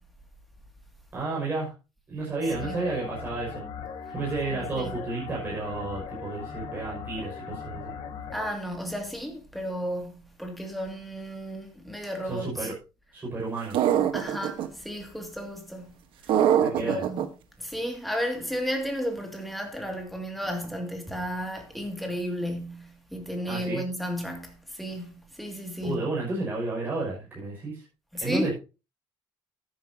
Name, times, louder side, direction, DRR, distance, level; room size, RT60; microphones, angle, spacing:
voice 1, 1.1-1.7 2.1-3.6 4.1-7.9 12.2-12.7 13.1-13.9 16.6-17.1 23.5-23.8 25.8-27.8 28.2-28.5, right 3 dB, 20° right, 6.0 m, -31 dB
sound 1, 2.4-8.5, left 7 dB, 65° left, 3.8 m, -39 dB
voice 2, 4.5-5.0 8.3-12.7 14.1-15.9 16.3-16.4 16.8-17.2 17.6-26.1 28.1-28.5, equal, ahead, 2.3 m, -33 dB
sound 2, 13.7-14.7 16.3-17.3, right 10 dB, 70° right, 1.3 m, -23 dB
13.0 x 10.5 x 2.8 m
cardioid pair, 170°, 9 cm